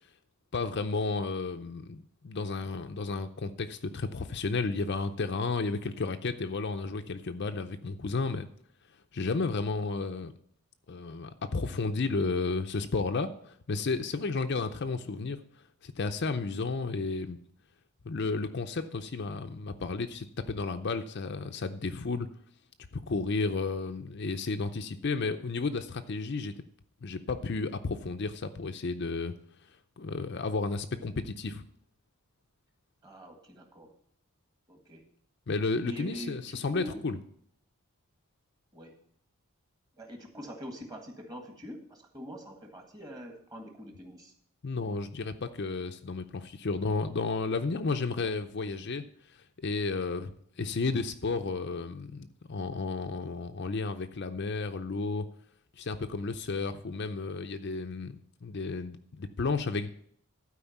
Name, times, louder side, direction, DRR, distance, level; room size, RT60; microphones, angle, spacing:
voice 1, 0.5-8.5 9.1-10.3 10.9-15.4 15.8-17.4 18.0-22.3 22.9-26.5 27.0-29.3 30.0-31.6 35.5-37.2 44.6-49.0 49.6-50.3 50.6-55.3 55.8-59.9, left 3 dB, 50° left, 7 dB, 0.5 m, -32 dB
voice 2, 33.0-33.9 34.7-35.0 35.8-37.1 38.7-39.0 40.0-44.3, equal, 15° right, 3 dB, 1.6 m, -44 dB
12.5 x 4.8 x 7.1 m, 0.65 s
head